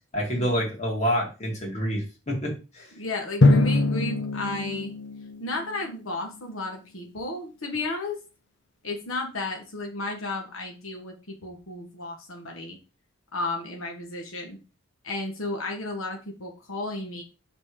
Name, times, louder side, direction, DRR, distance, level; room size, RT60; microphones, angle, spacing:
voice 1, 0.1-2.9, equal, 35° left, -2 dB, 2.4 m, -28 dB
voice 2, 3.0-4.9 5.4-8.2 8.8-12.8 13.3-14.6 15.0-17.2, left 2 dB, 85° left, 2 dB, 1.5 m, -33 dB
Drum, 3.4-6.1, left 2 dB, 60° left, 0.8 m, -23 dB
5.5 x 4.2 x 4.8 m, 0.31 s
head